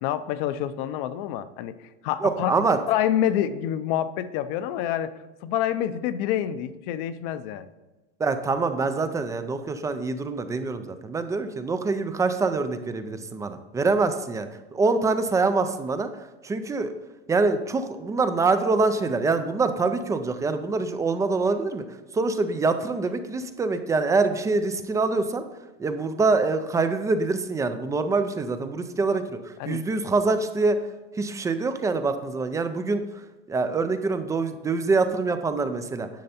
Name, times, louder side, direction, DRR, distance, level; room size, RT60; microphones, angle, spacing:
voice 1, 0.0-1.8 2.0-2.5 2.9-5.1 5.4-7.7 29.6-29.8, left 11 dB, 50° left, 13 dB, 0.7 m, -27 dB
voice 2, 2.2-2.8 8.2-16.1 16.4-16.9 17.3-21.8 22.1-25.4 25.8-30.8 31.2-33.0 33.5-36.1, right 3 dB, 10° right, 9 dB, 0.3 m, -25 dB
10.5 x 6.6 x 4.2 m, 1.2 s
supercardioid pair, 135°, 35 cm